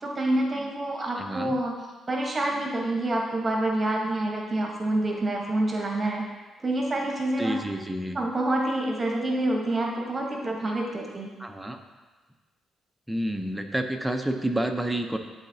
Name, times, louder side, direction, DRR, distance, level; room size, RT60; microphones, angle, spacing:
voice 1, 0.0-1.8 2.1-6.2 6.6-7.6 8.1-11.3, right 1 dB, 30° right, 0 dB, 1.1 m, -27 dB
voice 2, 1.2-1.6 7.4-8.2 11.4-11.8 13.1-15.2, right 1 dB, 5° right, 5 dB, 0.6 m, -29 dB
11.0 x 4.0 x 2.7 m, 1.3 s
cardioid pair, 90°, 0 cm